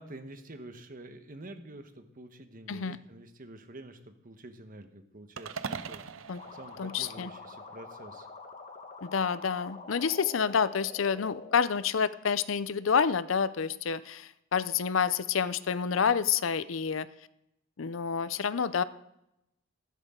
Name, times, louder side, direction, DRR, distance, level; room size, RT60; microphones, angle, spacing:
voice 1, 0.0-8.3, right 1 dB, 45° right, 8 dB, 1.2 m, -48 dB
sound 1, 5.4-7.7, right 5 dB, 85° right, 0.7 m, -41 dB
sound 2, 6.4-11.6, left 3 dB, 35° left, 1.3 m, -46 dB
voice 2, 6.8-7.3 9.0-17.1 17.8-18.8, left 6 dB, 75° left, 16 dB, 0.6 m, -28 dB
14.5 x 13.0 x 3.8 m, 0.84 s
head